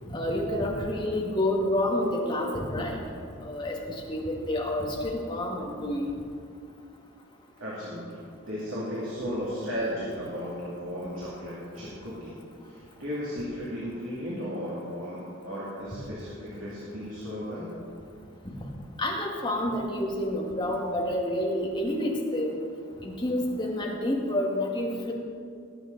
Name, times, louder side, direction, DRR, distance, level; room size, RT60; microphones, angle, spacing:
voice 1, 0.1-3.0 3.4-3.7 4.1-6.1 19.0-22.6 23.0-25.1, left 1 dB, 20° left, -2 dB, 1.8 m, -28 dB
voice 2, 7.6-8.2 8.4-12.3 12.7-17.7, equal, 75° right, -8 dB, 2.7 m, -35 dB
19.5 x 8.2 x 4.0 m, 2.3 s
head